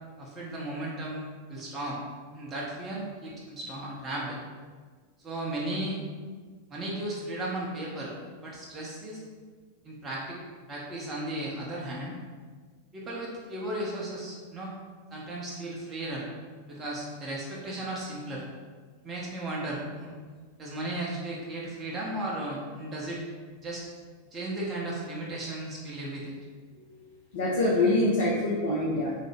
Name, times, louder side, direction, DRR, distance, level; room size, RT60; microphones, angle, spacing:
voice 1, 0.2-2.0 2.3-4.4 5.2-6.0 6.7-8.1 8.4-9.2 9.8-10.4 10.7-12.2 12.9-14.8 15.1-16.3 16.7-18.5 19.0-20.1 20.6-23.2 23.6-23.8 24.3-26.4, right 1 dB, 20° right, -5 dB, 0.6 m, -35 dB
voice 2, 27.3-29.1, left 2 dB, 55° left, -5 dB, 0.4 m, -25 dB
3.1 x 2.0 x 3.1 m, 1.5 s
figure-of-eight pair, 90°, 0 cm